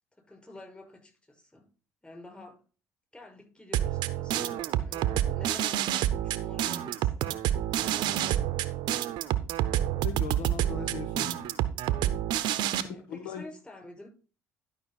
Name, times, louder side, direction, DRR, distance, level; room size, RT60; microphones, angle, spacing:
voice 1, 0.2-1.7 2.0-2.6 3.1-8.1 11.1-11.4 12.7-14.1, left 2 dB, 15° left, 5.6 m, -49 dB
sound 1, 3.7-12.8, right 12 dB, 65° right, 0.7 m, -28 dB
voice 2, 10.0-11.5 12.5-13.4, left 7 dB, 70° left, 1.1 m, -39 dB
11.5 x 5.5 x 4.2 m
hypercardioid pair, 55°, 8 cm